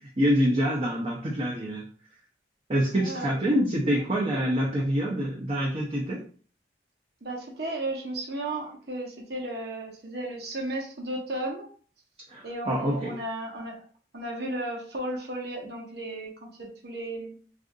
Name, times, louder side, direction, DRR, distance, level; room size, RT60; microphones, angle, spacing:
voice 1, 0.2-1.8 2.7-6.2 12.3-13.2, equal, 30° right, -4 dB, 0.5 m, -26 dB
voice 2, 2.9-3.6 3.9-4.0 7.2-11.7 12.4-13.8 14.1-17.4, right 1 dB, 60° right, -1 dB, 0.8 m, -34 dB
3.6 x 2.5 x 2.5 m, 0.44 s
head